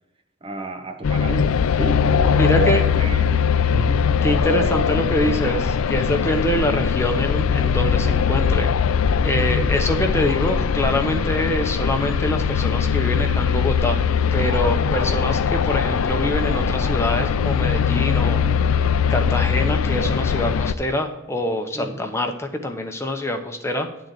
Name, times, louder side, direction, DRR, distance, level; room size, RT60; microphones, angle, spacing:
voice 1, 0.4-4.1 9.4-9.7 21.7-22.0, right 2 dB, 25° right, 0.6 m, -32 dB
sound 1, 1.0-20.7, left 6 dB, 90° left, 0.4 m, -21 dB
voice 2, 2.3-2.8 4.2-8.8 9.2-14.0 14.3-23.9, left 1 dB, 15° left, 0.7 m, -25 dB
10.5 x 3.9 x 7.4 m
head